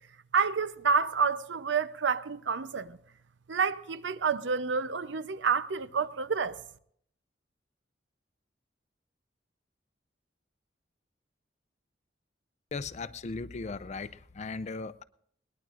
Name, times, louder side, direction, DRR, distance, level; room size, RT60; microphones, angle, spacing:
voice 1, 0.3-3.0 3.5-6.6, right 5 dB, 85° right, 0.6 m, -29 dB
voice 2, 12.7-15.0, left 4 dB, 40° left, 0.5 m, -37 dB
21.0 x 20.0 x 2.5 m
head